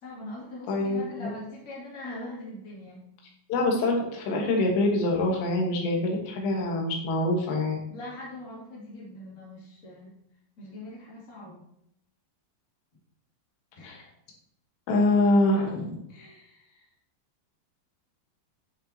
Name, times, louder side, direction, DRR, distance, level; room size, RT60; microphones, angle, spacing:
voice 1, 0.0-3.0 7.9-10.1 10.6-11.6 13.7-13.9 16.1-16.9, left 1 dB, 30° left, -5 dB, 1.7 m, -42 dB
voice 2, 0.7-1.3 3.5-7.8 13.8-14.0 14.9-16.0, left 2 dB, 70° left, 0 dB, 3.4 m, -25 dB
9.7 x 5.4 x 2.8 m, 0.76 s
omnidirectional pair, 5.4 m